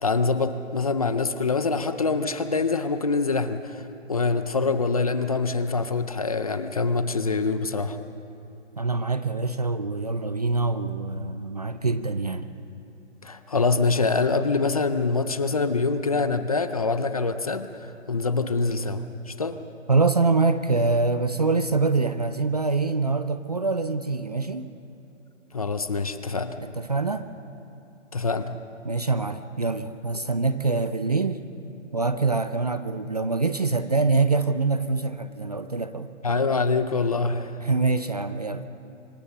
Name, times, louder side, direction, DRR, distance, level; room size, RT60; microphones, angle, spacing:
voice 1, 0.0-3.8 4.1-8.0 13.2-17.7 18.1-19.6 25.5-26.6 28.1-28.6 36.2-37.5, left 4 dB, 30° left, 11 dB, 0.6 m, -25 dB
voice 2, 8.8-12.5 19.9-24.7 26.6-27.2 28.8-31.4 31.9-36.1 37.6-38.6, right 3 dB, 30° right, 11 dB, 0.5 m, -25 dB
25.5 x 17.0 x 6.9 m, 2.8 s
hypercardioid pair, 160°, 38 cm